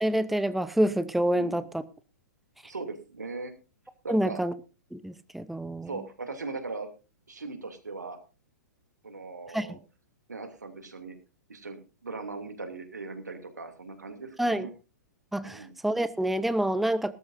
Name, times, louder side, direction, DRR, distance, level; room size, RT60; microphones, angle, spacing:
voice 1, 0.0-1.8 4.1-4.5 4.9-5.9 9.5-9.7 14.4-14.7 15.3-17.1, right 1 dB, ahead, 14 dB, 0.6 m, -27 dB
voice 2, 2.6-3.5 4.0-4.4 5.9-6.9 7.3-8.2 9.0-9.8 10.3-11.1 11.5-14.7 15.4-15.7, right 3 dB, 75° right, 6 dB, 2.7 m, -39 dB
19.5 x 13.0 x 2.6 m, 0.31 s
figure-of-eight pair, 110°, 9 cm